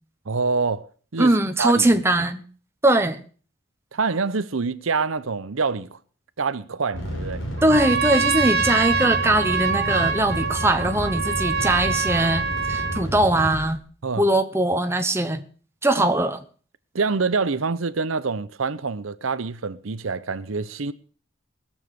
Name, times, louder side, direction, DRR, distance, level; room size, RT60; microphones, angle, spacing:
voice 1, 0.3-0.9 1.1-1.9 3.9-6.0 6.4-7.4 14.0-14.3 16.0-16.1 16.9-20.9, right 4 dB, 80° right, 0.8 m, -26 dB
voice 2, 1.2-2.4 2.8-3.2 7.6-13.8 14.2-15.4 15.8-16.4, right 1 dB, 10° right, 1.0 m, -21 dB
sound 1, 6.9-13.7, equal, 70° left, 5.1 m, -31 dB
Trumpet, 7.6-13.1, right 5 dB, 50° right, 1.7 m, -25 dB
20.0 x 7.3 x 6.5 m
head